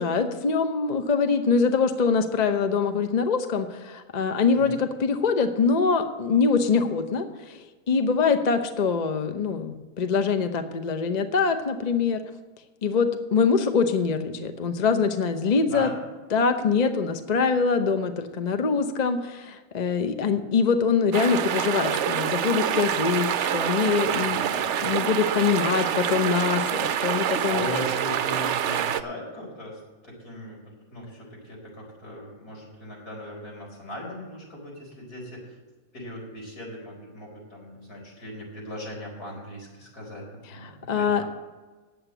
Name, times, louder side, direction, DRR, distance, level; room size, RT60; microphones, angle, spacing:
voice 1, 0.0-12.2 12.8-15.9 16.3-24.4 24.8-27.7 40.9-41.2, left 5 dB, 35° left, 7 dB, 0.8 m, -24 dB
voice 2, 15.6-15.9 24.1-24.5 27.5-35.4 35.9-41.3, left 1 dB, 90° left, -3 dB, 5.0 m, -38 dB
sound 1, 21.1-29.0, right 9 dB, 65° right, 0.8 m, -26 dB
9.4 x 7.9 x 8.1 m, 1.3 s
omnidirectional pair, 1.6 m